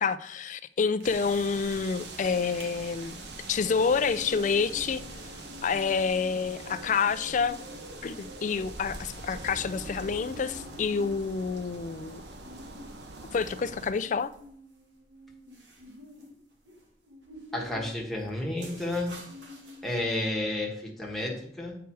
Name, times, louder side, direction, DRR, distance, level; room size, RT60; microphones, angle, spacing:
voice 1, 0.0-3.2 3.5-5.0 5.6-7.6 8.0-12.2 13.3-14.3, left 5 dB, 45° left, 0.4 m, -28 dB
sound 1, 1.0-13.9, right 2 dB, 65° right, 1.0 m, -43 dB
sound 2, 1.0-1.6 1.9-2.0 2.3-2.7 3.1-20.3, left 1 dB, 85° right, 1.7 m, -49 dB
voice 2, 17.5-19.2 19.8-21.8, left 1 dB, ahead, 1.5 m, -31 dB
8.2 x 4.8 x 4.6 m
head